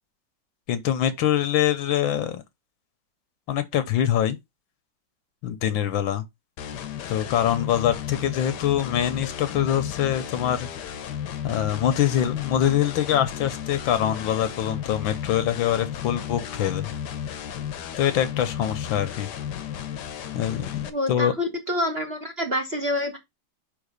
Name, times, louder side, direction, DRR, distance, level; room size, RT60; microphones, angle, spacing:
voice 1, 0.7-2.4 3.5-4.4 5.4-6.3 7.1-10.7 11.4-16.9 18.0-19.3 20.3-20.7 21.1-21.3, left 10 dB, 85° left, 1.6 m, -24 dB
sound 1, 6.6-20.9, left 9 dB, 65° left, 1.3 m, -34 dB
voice 2, 20.9-23.2, left 1 dB, 35° right, 1.3 m, -27 dB
5.4 x 4.1 x 5.2 m
omnidirectional pair, 2.1 m